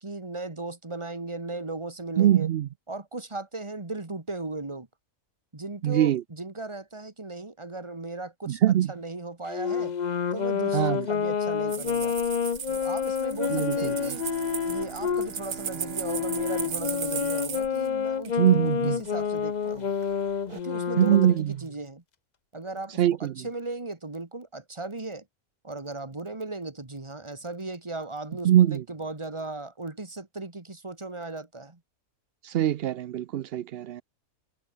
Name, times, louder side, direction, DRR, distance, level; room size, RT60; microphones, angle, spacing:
voice 1, 0.0-2.5 2.9-4.9 5.5-8.6 8.9-9.9 10.3-12.2 12.7-14.2 14.6-19.9 20.5-22.0 22.5-25.3 25.6-31.8, right 2 dB, 20° right, 1.9 m, -37 dB
voice 2, 2.2-2.7 5.8-6.2 8.5-8.9 10.7-11.1 13.5-13.9 18.4-19.0 21.0-21.5 23.0-23.5 28.4-28.8 32.4-34.0, right 12 dB, 65° right, 0.6 m, -22 dB
Wind instrument woodwind instrument, 9.5-15.3 16.0-21.5, left 7 dB, 40° left, 0.6 m, -28 dB
sound 1, 11.7-17.9 18.2-18.3 19.2-19.7 20.0-20.6, right 8 dB, 85° right, 2.0 m, -37 dB
Bowed string instrument, 13.3-18.6, right 5 dB, 40° right, 1.8 m, -43 dB
omnidirectional pair, 1.6 m